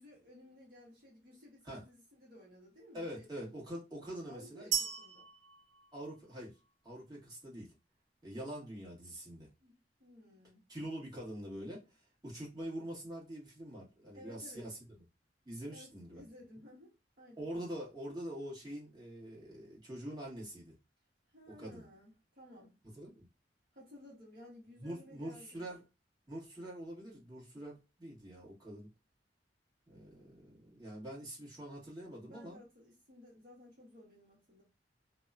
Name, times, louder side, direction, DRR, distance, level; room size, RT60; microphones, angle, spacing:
voice 1, 0.0-3.4 4.3-5.3 9.6-10.7 14.1-14.7 15.7-17.5 21.3-22.7 23.7-25.6 32.0-34.6, left 1 dB, 55° right, 1.0 m, -56 dB
voice 2, 2.9-4.7 5.9-6.6 6.8-7.7 8.2-9.5 10.7-14.7 15.4-16.2 17.4-20.7 21.5-21.8 23.0-23.3 24.8-25.8 26.3-28.9 29.9-32.6, right 1 dB, 25° right, 1.5 m, -45 dB
sound 1, 4.7-6.7, right 8 dB, 85° right, 0.5 m, -38 dB
2.7 x 2.2 x 2.4 m
head